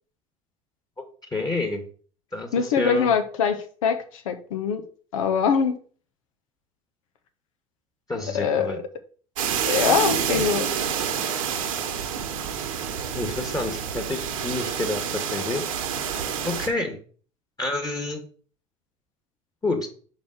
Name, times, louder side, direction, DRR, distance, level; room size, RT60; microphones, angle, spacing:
voice 1, 1.3-1.8 2.3-3.1 8.1-8.8 9.9-10.0 10.3-10.5 13.1-15.6 16.4-17.0 17.6-18.2 19.6-19.9, left 2 dB, 25° left, 1.9 m, -28 dB
voice 2, 2.5-4.8 5.1-5.8 8.3-8.8 9.7-10.6, left 6 dB, 80° left, 1.1 m, -23 dB
sound 1, 9.4-16.7, right 8 dB, 85° right, 1.2 m, -28 dB
5.2 x 4.8 x 6.4 m
hypercardioid pair, 75°, 17 cm